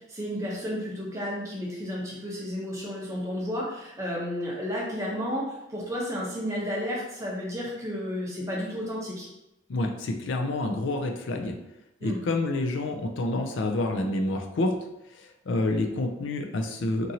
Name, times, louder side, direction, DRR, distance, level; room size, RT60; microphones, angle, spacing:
voice 1, 0.0-9.3 12.0-12.2, equal, 15° right, -5 dB, 0.6 m, -32 dB
voice 2, 9.7-11.6 12.0-14.7 15.1-17.1, left 2 dB, 65° left, 4 dB, 0.4 m, -28 dB
2.8 x 2.6 x 2.7 m, 0.87 s
head